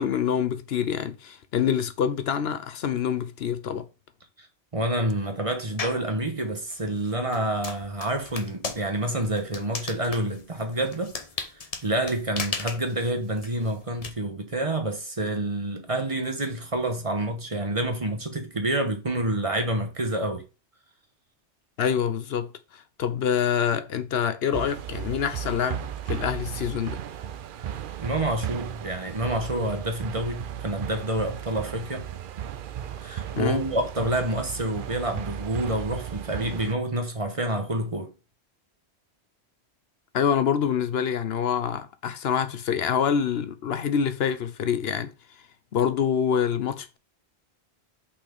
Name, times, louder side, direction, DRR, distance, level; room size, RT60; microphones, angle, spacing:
voice 1, 0.0-3.9 21.8-27.0 33.4-33.6 40.1-45.1 45.7-47.0, left 8 dB, 70° left, 0.9 m, -26 dB
voice 2, 4.7-11.2 11.8-20.4 28.0-32.1 33.0-38.1, right 1 dB, 30° right, 1.1 m, -28 dB
sound 1, 5.8-6.1 6.7-14.1, left 4 dB, 40° left, 0.8 m, -36 dB
sound 2, 24.5-36.7, right 10 dB, 60° right, 0.7 m, -35 dB
5.7 x 4.2 x 5.2 m
omnidirectional pair, 1.1 m